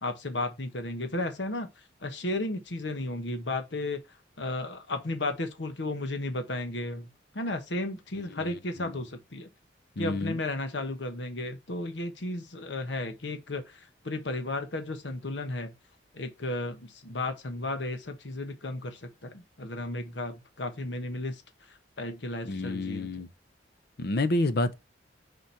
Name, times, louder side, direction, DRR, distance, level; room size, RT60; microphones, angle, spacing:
voice 1, 0.0-1.7 2.0-4.0 4.4-9.5 10.0-15.7 16.1-23.2, left 2 dB, 80° left, 1.1 m, -34 dB
voice 2, 10.0-10.4 22.5-23.3 24.0-24.7, left 2 dB, 60° left, 0.7 m, -29 dB
5.1 x 4.2 x 4.5 m
head